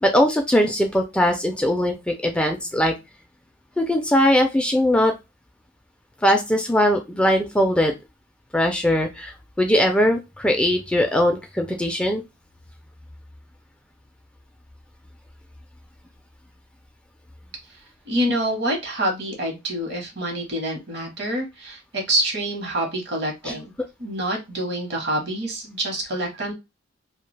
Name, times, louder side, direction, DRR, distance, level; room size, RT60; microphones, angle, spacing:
voice 1, 0.0-3.0 3.8-5.1 6.2-7.9 8.5-12.2 23.4-23.5, left 1 dB, 5° left, 3 dB, 0.3 m, -20 dB
voice 2, 18.1-23.7 24.0-26.5, right 1 dB, 60° right, 2 dB, 1.0 m, -26 dB
2.3 x 2.2 x 3.2 m, 0.23 s
head